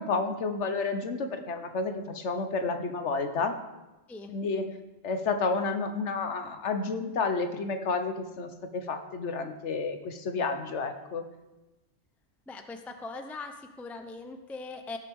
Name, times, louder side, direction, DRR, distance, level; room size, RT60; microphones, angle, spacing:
voice 1, 0.0-3.5 4.3-4.8 5.0-11.2, left 4 dB, 65° left, 7 dB, 1.2 m, -30 dB
voice 2, 12.5-15.0, left 3 dB, ahead, 6 dB, 0.5 m, -40 dB
17.0 x 7.6 x 3.6 m, 1.0 s
omnidirectional pair, 1.3 m